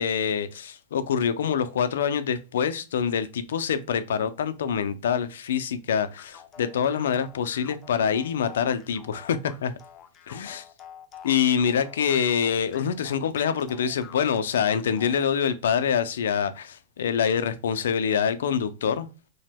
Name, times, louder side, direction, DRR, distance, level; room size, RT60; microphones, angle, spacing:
voice 1, 0.0-9.7 10.3-10.6 11.2-19.1, left 7 dB, 90° left, 0.3 m, -25 dB
sound 1, 6.2-15.5, left 8 dB, 30° left, 0.4 m, -48 dB
2.9 x 2.1 x 3.4 m
supercardioid pair, 140°, 0 cm